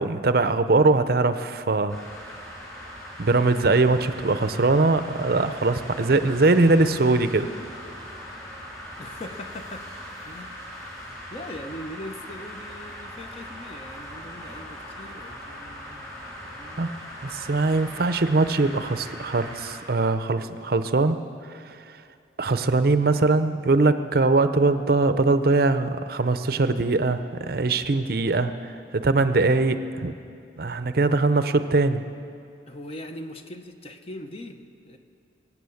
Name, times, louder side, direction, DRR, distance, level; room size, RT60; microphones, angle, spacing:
voice 1, 0.0-2.0 3.2-7.5 16.8-16.9 17.2-21.2 21.5-21.8 22.4-30.1 30.6-32.0, right 3 dB, 55° right, 11 dB, 0.6 m, -21 dB
sound 1, 1.9-19.8, equal, 15° left, 3.9 m, -40 dB
voice 2, 9.0-9.9 10.2-16.1 16.4-16.9 32.7-35.0, left 1 dB, 30° left, 6 dB, 0.8 m, -41 dB
24.0 x 8.5 x 7.1 m, 2.5 s
head